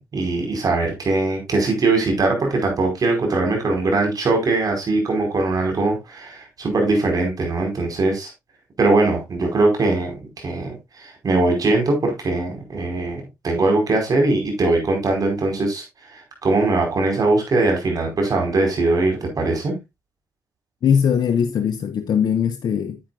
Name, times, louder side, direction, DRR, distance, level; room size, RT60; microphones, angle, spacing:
voice 1, 0.1-8.3 8.8-15.8 16.1-19.7, right 2 dB, 55° right, 5.1 m, -21 dB
voice 2, 20.8-23.0, left 8 dB, 65° left, 0.9 m, -20 dB
10.0 x 8.7 x 2.5 m
hypercardioid pair, 40°, 7 cm